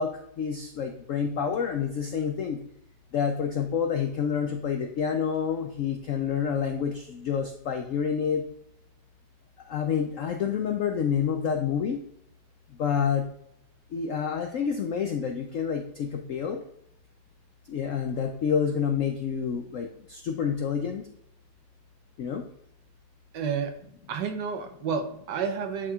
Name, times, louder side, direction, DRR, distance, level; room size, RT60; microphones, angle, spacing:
voice 1, 0.0-2.6 3.1-8.4 9.6-12.0 12.7-13.3 13.9-16.6 17.7-21.1 22.2-22.5, left 7 dB, 80° left, 4 dB, 0.7 m, -28 dB
voice 2, 23.3-23.7 24.1-25.9, right 6 dB, 70° right, 6 dB, 1.4 m, -30 dB
10.0 x 4.4 x 2.4 m, 0.76 s
omnidirectional pair, 2.0 m